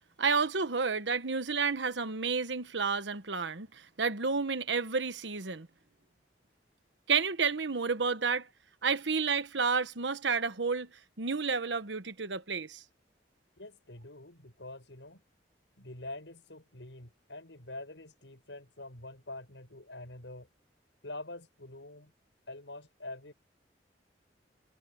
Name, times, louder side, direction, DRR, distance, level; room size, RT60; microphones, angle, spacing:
voice 1, 0.2-5.7 7.1-8.5 8.8-10.9 11.2-12.8, right 5 dB, 85° right, 1.2 m, -30 dB
voice 2, 13.6-15.2 15.8-20.5 21.0-22.1 22.5-23.3, left 2 dB, 90° left, 6.8 m, -45 dB
head